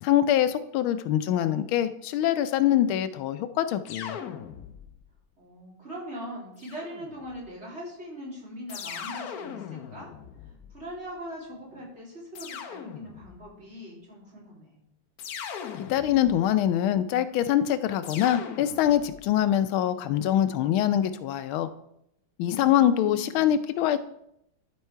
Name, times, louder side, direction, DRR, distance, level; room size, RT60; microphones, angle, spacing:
voice 1, 0.0-4.2 15.8-21.7 22.4-24.0, left 11 dB, 85° left, 11 dB, 1.4 m, -24 dB
sound 1, 3.9-5.1 6.6-7.4 8.7-11.0 12.3-13.5 15.2-16.5 18.0-19.2, left 8 dB, 65° left, 1.0 m, -40 dB
voice 2, 5.4-10.1 10.4-14.8 22.4-23.5, equal, 30° right, -5 dB, 3.0 m, -41 dB
12.5 x 4.6 x 4.5 m, 0.77 s
omnidirectional pair, 2.2 m